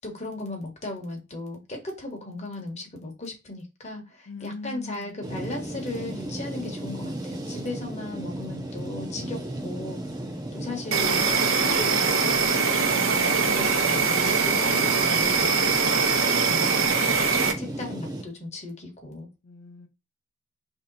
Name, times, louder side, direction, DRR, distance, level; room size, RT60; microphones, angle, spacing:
voice 1, 0.0-10.0 10.5-12.6 13.2-15.6 16.4-17.0 17.5-19.3, left 2 dB, 35° left, 1.0 m, -37 dB
voice 2, 4.3-5.2 13.0-13.4 19.4-19.9, left 4 dB, 80° left, 0.6 m, -41 dB
sound 1, 5.2-18.2, right 1 dB, 20° right, 0.6 m, -35 dB
Insect, 10.9-17.5, right 5 dB, 80° right, 0.7 m, -22 dB
3.2 x 2.8 x 3.9 m
head